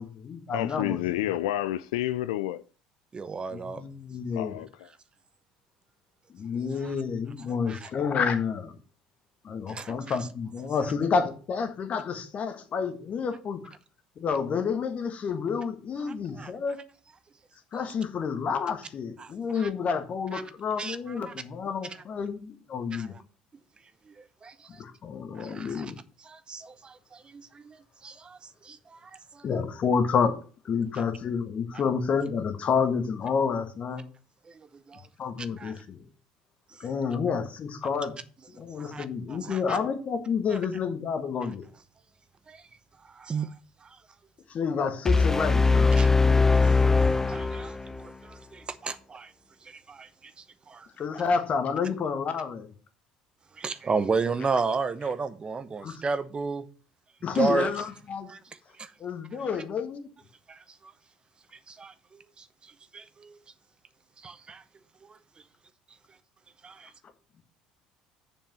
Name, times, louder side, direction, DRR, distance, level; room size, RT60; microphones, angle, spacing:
voice 1, 0.0-1.0 3.5-4.6 6.3-8.7 9.4-13.7 14.2-16.8 17.7-23.1 24.8-26.0 29.4-30.4 30.6-34.0 35.2-36.0 36.8-38.2 38.5-41.7 44.5-46.0 51.0-52.7 54.2-54.3 55.8-56.0 57.2-58.3 59.0-60.1, left 6 dB, 40° left, 1.5 m, -29 dB
voice 2, 0.5-2.6 4.3-4.9, left 13 dB, 70° left, 0.4 m, -29 dB
voice 3, 3.1-3.8 6.8-6.9 7.7-7.9 9.7-10.2 16.0-16.5 19.2-19.7 20.3-20.4 20.8-21.3 22.9-23.1 24.1-24.2 24.4-24.8 25.4-25.9 26.2-27.8 28.0-29.4 30.9-31.0 34.5-35.1 35.6-35.7 38.8-39.8 40.5-40.6 42.5-42.6 43.0-43.5 43.8-43.9 46.0-46.1 47.3-49.3 49.6-50.1 50.7-50.9 53.6-56.6 57.3-57.7 58.3-58.4 58.8-58.9 60.5-60.9 61.7-62.4 62.9-63.4 64.2-64.6 65.0-65.1 66.6-66.9, right 4 dB, 30° right, 0.9 m, -33 dB
sound 1, 45.1-48.1, left 4 dB, 10° left, 0.7 m, -21 dB
7.1 x 5.5 x 7.3 m
figure-of-eight pair, 60°, 3 cm